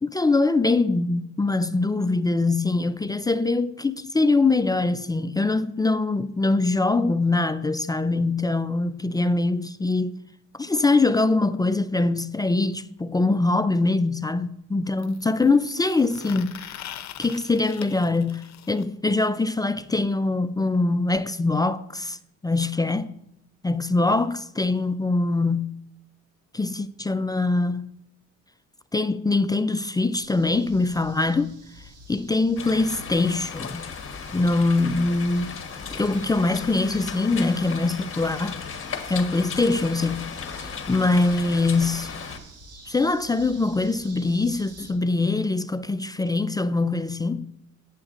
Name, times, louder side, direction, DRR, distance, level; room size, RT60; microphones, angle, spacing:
voice 1, 0.0-10.2 10.5-16.8 17.2-22.2 22.4-23.1 23.6-25.8 26.5-27.9 28.9-31.5 32.1-33.9 34.3-35.5 35.9-38.6 39.1-40.3 40.9-42.1 42.9-47.5, left 3 dB, 15° left, 0.3 m, -23 dB
sound 1, 13.0-13.1 15.0-18.8 20.7-20.8 21.1-21.2 21.5-21.6 22.6-22.7, left 11 dB, 65° left, 0.7 m, -42 dB
sound 2, 30.2-44.9, right 2 dB, 55° right, 2.0 m, -48 dB
sound 3, 32.6-42.4, left 6 dB, 45° left, 1.2 m, -36 dB
14.0 x 8.8 x 2.5 m
cardioid pair, 90°, 30 cm